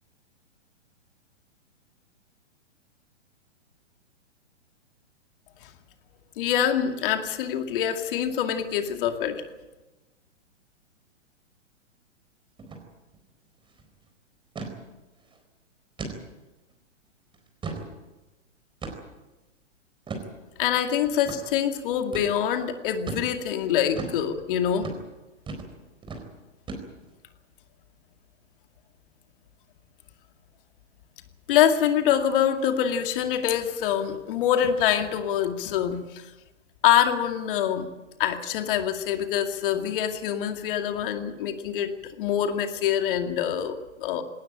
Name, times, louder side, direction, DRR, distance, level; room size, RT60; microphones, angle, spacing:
voice 1, 6.4-9.4 20.6-24.9 31.5-36.2 36.8-37.9 38.2-41.9 42.2-44.2, left 9 dB, 45° left, 6 dB, 2.4 m, -25 dB
sound 1, 12.6-12.8 13.1-13.2 13.6-13.9 14.6-14.8 15.2-15.4 16.0-16.2 16.7-16.8 17.3-17.9 18.8-19.2 20.1-20.3 21.3-21.4 22.1-22.3 23.1-23.3 24.0-24.2 24.8-25.0 25.5-25.7 26.0-26.3 26.7-27.1, right 4 dB, 15° right, 4.2 m, -35 dB
20.0 x 18.5 x 8.9 m, 1.1 s
hypercardioid pair, 125°, 37 cm